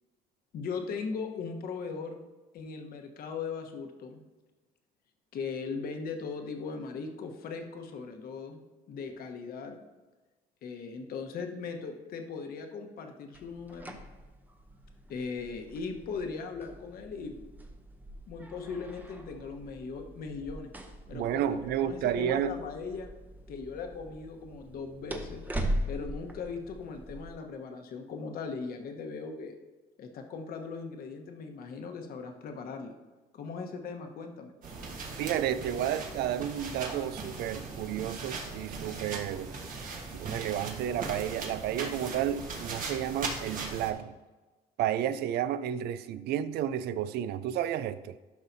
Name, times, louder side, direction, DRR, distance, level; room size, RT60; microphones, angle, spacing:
voice 1, 0.5-2.2 2.5-4.2 5.3-8.6 8.9-9.8 10.6-14.0 15.1-17.4 18.3-20.7 21.1-23.1 23.5-25.4 25.9-29.5 30.0-32.9 33.3-34.5, left 5 dB, 65° left, 1.1 m, -39 dB
sound 1, 13.3-27.3, right 1 dB, 10° right, 0.8 m, -41 dB
voice 2, 21.1-22.6 35.2-39.6 40.1-44.1 44.8-48.2, right 10 dB, 75° right, 0.4 m, -31 dB
sound 2, 34.6-43.9, right 4 dB, 55° right, 1.4 m, -39 dB
12.0 x 5.5 x 2.7 m
cardioid pair, 110°, 17 cm